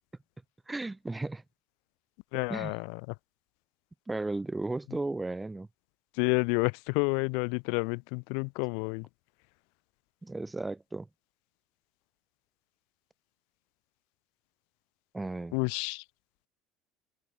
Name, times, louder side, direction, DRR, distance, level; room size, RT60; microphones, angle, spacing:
voice 1, 0.7-1.4 2.5-2.7 4.1-5.7 10.2-11.1 15.1-15.5, right 2 dB, 10° right, 1.9 m, -34 dB
voice 2, 2.3-3.1 4.9-5.0 6.1-9.1 15.5-16.0, left 40 dB or more, 75° left, 0.6 m, -30 dB
open air
cardioid pair, 165°, 0 cm